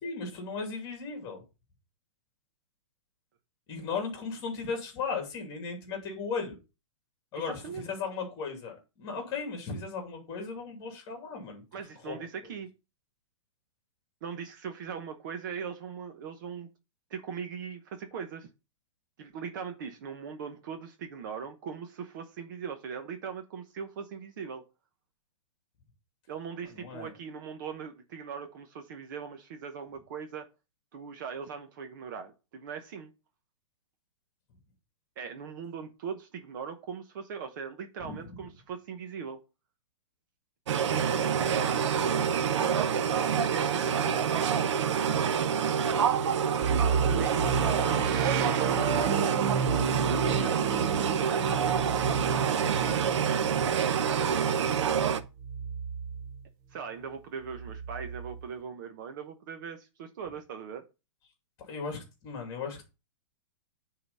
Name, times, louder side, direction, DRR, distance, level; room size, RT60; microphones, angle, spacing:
voice 1, 0.0-1.4 3.7-6.6 7.3-11.6 12.0-12.2 26.7-27.1 38.0-38.4 47.1-48.1 48.8-49.1 61.7-62.9, left 5 dB, 25° left, 2.7 m, -37 dB
voice 2, 7.5-7.8 11.7-12.7 14.2-16.7 17.1-18.5 19.2-24.6 26.3-30.5 30.9-33.1 35.2-39.4 40.9-44.7 47.2-48.0 50.1-54.7 56.7-60.8, right 6 dB, 40° right, 0.9 m, -40 dB
sound 1, 40.7-55.2, right 7 dB, 65° right, 0.8 m, -27 dB
sound 2, 46.6-56.4 57.4-58.5, right 6 dB, 20° right, 0.4 m, -32 dB
9.3 x 3.9 x 5.4 m
hypercardioid pair, 170°, 16 cm